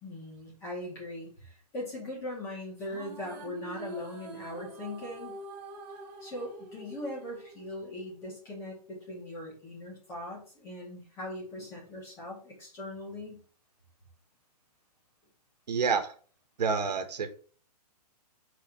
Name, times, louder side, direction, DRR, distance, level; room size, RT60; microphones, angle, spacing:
voice 1, 0.0-5.4 6.2-13.4, left 1 dB, 15° left, 2.3 m, -40 dB
sound 1, 2.8-8.3, right 3 dB, 25° right, 1.6 m, -46 dB
voice 2, 15.7-16.1 16.6-17.3, right 5 dB, 80° right, 1.3 m, -28 dB
4.9 x 4.2 x 6.0 m
hypercardioid pair, 180°, 21 cm